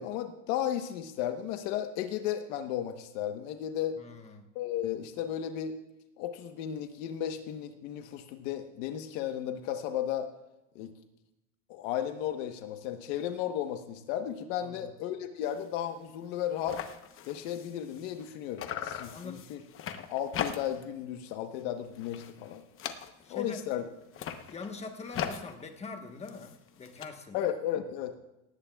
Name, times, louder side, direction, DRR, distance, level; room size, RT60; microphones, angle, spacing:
voice 1, 0.0-4.0 4.5-5.8 6.2-10.3 10.7-10.9 11.7-16.8 17.3-19.6 20.1-22.6 23.3-23.8 27.3-28.1, left 10 dB, 70° left, 7 dB, 1.1 m, -34 dB
voice 2, 4.0-4.4 14.6-14.9 19.1-19.4 23.2-23.6 24.5-27.5, left 4 dB, 15° left, 5 dB, 1.2 m, -43 dB
sound 1, 15.4-15.7 16.0-16.1 16.3-18.3 18.6-20.9 21.3-21.6 22.0-23.5 24.0-27.1, left 8 dB, 35° left, 0.9 m, -40 dB
18.5 x 16.0 x 2.3 m, 0.94 s
cardioid pair, 155°, 39 cm